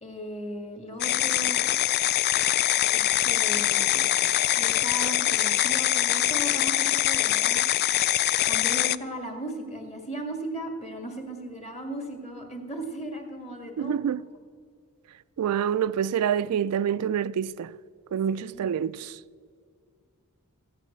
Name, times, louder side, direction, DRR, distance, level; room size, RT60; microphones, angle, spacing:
voice 1, 0.0-1.7 2.9-4.1 4.6-7.6 8.5-14.0 18.5-18.8, right 1 dB, 30° left, 1.9 m, -37 dB
sound 1, 1.0-9.0, left 13 dB, 45° left, 0.3 m, -23 dB
voice 2, 13.8-14.2 15.4-17.7 18.1-19.2, right 8 dB, 80° right, 0.3 m, -27 dB
15.0 x 9.6 x 6.5 m
head